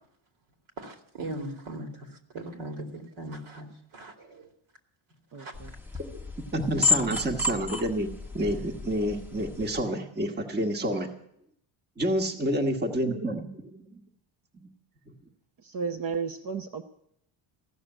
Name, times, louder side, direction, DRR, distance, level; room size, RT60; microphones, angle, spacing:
voice 1, 0.8-1.9 2.3-4.5 5.4-5.5, right 1 dB, 70° right, 4 dB, 2.6 m, -39 dB
voice 2, 5.3-5.7 15.6-16.8, right 5 dB, 45° right, 4 dB, 0.8 m, -33 dB
sound 1, 5.5-9.8, left 4 dB, 5° right, 0.8 m, -31 dB
voice 3, 6.5-8.1 8.3-11.1 12.0-14.0, right 1 dB, 20° right, 3 dB, 1.2 m, -29 dB
15.5 x 6.6 x 9.9 m, 0.74 s
cardioid pair, 155°, 49 cm